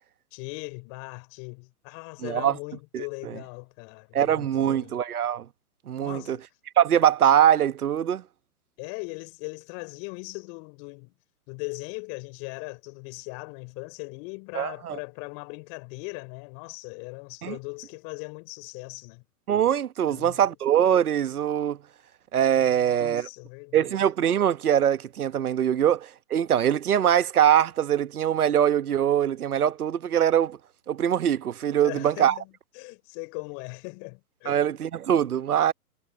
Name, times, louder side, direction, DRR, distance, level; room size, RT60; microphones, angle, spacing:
voice 1, 0.3-4.9 6.0-6.4 8.8-11.1 11.5-19.2 20.1-20.4 22.6-23.9 31.8-34.8, left 36 dB, 35° left, 4.2 m, -39 dB
voice 2, 2.2-2.6 2.9-3.0 4.1-5.4 5.9-6.4 6.8-8.2 14.5-15.0 17.4-17.6 19.5-21.8 22.3-23.3 23.7-30.6 30.9-32.3 34.4-35.7, right 10 dB, 75° right, 1.3 m, -23 dB
hypercardioid pair, 125°, 45 cm